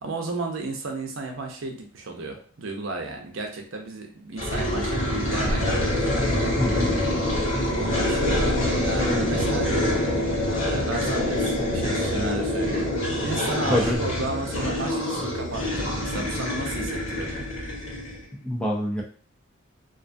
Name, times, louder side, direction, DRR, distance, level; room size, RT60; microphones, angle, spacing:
voice 1, 0.0-5.8 7.7-10.0 10.6-12.9 13.2-17.5, right 3 dB, 80° right, 3 dB, 0.6 m, -33 dB
sound 1, 4.4-18.2, left 1 dB, 85° left, 1.3 m, -25 dB
voice 2, 6.6-6.9 13.7-14.0 18.4-19.0, equal, 5° left, -2 dB, 0.3 m, -25 dB
2.5 x 2.2 x 2.5 m, 0.43 s
head